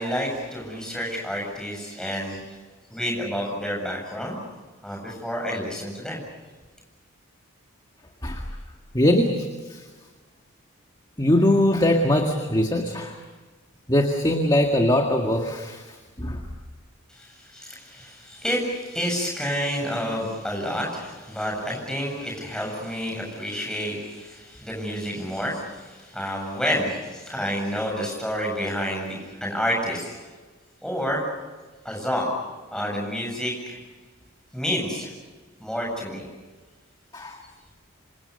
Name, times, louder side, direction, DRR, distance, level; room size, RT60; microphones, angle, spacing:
voice 1, 0.0-2.6 2.9-4.4 4.8-6.2 17.1-30.2 30.8-31.3 31.8-32.3 32.7-33.8 34.5-35.1 35.6-36.3, equal, 5° left, -1 dB, 7.9 m, -29 dB
voice 2, 8.9-9.8 11.2-13.2 13.9-16.4 37.1-37.4, left 1 dB, 20° left, 3 dB, 1.8 m, -22 dB
27.0 x 26.5 x 6.8 m, 1.3 s
head